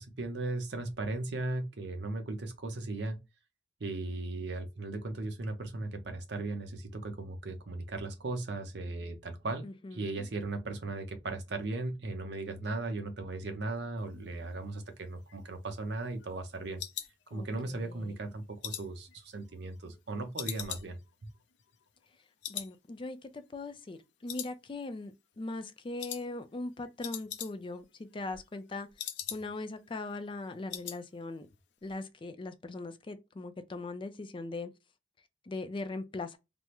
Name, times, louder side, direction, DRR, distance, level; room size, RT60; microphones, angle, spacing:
voice 1, 0.0-3.2 3.8-9.6 9.9-16.8 17.3-21.3, right 2 dB, 70° right, 0.7 m, -37 dB
voice 2, 9.6-10.2 17.3-18.2 22.5-31.5 31.8-34.7 35.4-36.4, left 2 dB, 30° left, 0.4 m, -40 dB
sound 1, 15.1-17.8 18.2-20.0 20.4-22.2 22.4-22.8 23.0-23.1 23.6-24.0 24.3-25.1 25.3-25.6 26.0-26.3 26.6-26.7 26.9-27.8 28.1-29.7 30.0-30.1 30.4-31.0 31.3-31.6 31.9-32.0, left 10 dB, 80° left, 0.5 m, -42 dB
3.4 x 2.1 x 2.9 m
head